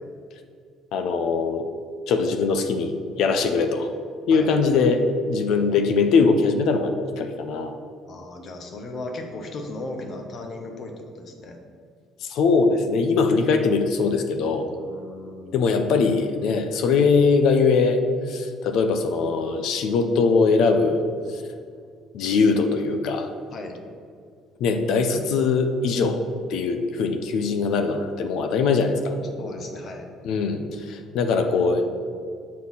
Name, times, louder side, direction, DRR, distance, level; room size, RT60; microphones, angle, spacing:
voice 1, 0.9-1.6 2.1-2.9 3.2-3.9 4.3-7.7 12.2-14.7 15.5-18.0 18.3-21.0 21.3-21.4 22.1-23.3 24.6-26.2 26.5-29.1 30.2-31.8, left 4 dB, 70° left, 7 dB, 0.6 m, -21 dB
voice 2, 8.1-11.6 14.6-15.7 23.5-23.8 29.2-30.1, left 2 dB, 50° left, 3 dB, 1.0 m, -36 dB
6.4 x 4.2 x 5.5 m, 2.1 s
cardioid pair, 95°, 0 cm